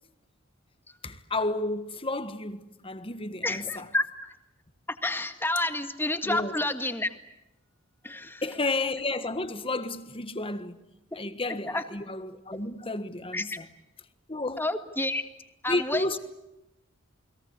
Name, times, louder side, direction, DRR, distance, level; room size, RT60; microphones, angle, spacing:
voice 1, 1.0-3.9 6.2-6.6 8.4-10.8 11.1-13.7 14.3-14.7 15.7-16.2, left 2 dB, 25° left, 1.5 m, -32 dB
voice 2, 3.4-4.0 5.0-7.1 8.0-8.4 11.7-11.8 13.3-13.6 14.6-15.2 15.6-16.2, left 2 dB, 10° left, 1.8 m, -29 dB
29.5 x 21.5 x 8.3 m
head